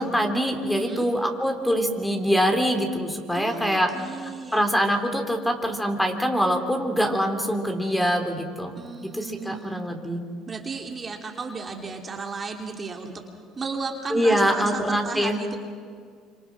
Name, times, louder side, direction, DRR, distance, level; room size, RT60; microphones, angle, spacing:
voice 1, 0.0-3.9 4.5-8.8 9.1-10.2 14.1-15.4, equal, 5° left, 5 dB, 3.6 m, -24 dB
voice 2, 0.7-1.1 3.3-4.6 8.8-9.8 10.5-13.1 13.5-15.6, right 4 dB, 30° right, 2 dB, 2.9 m, -34 dB
27.0 x 26.0 x 6.3 m, 2.1 s
supercardioid pair, 75°, 0 cm